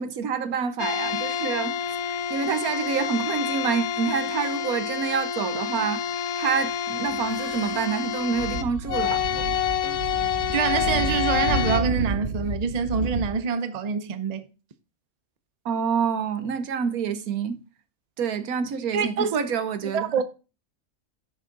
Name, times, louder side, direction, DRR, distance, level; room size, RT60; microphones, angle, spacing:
voice 1, 0.0-1.8 2.0-6.0 6.4-9.2 15.6-17.6 18.2-20.2, right 6 dB, 90° right, 1.4 m, -27 dB
sound 1, 0.8-11.8, left 9 dB, 85° left, 1.3 m, -28 dB
sound 2, 7.1-9.3, left 1 dB, 55° left, 5.3 m, -47 dB
Speech / Wind, 8.3-13.3, right 3 dB, 65° right, 2.2 m, -31 dB
voice 2, 10.5-14.5 18.9-19.4 19.9-20.2, right 6 dB, 40° right, 0.6 m, -25 dB
10.5 x 6.4 x 3.8 m
omnidirectional pair, 1.5 m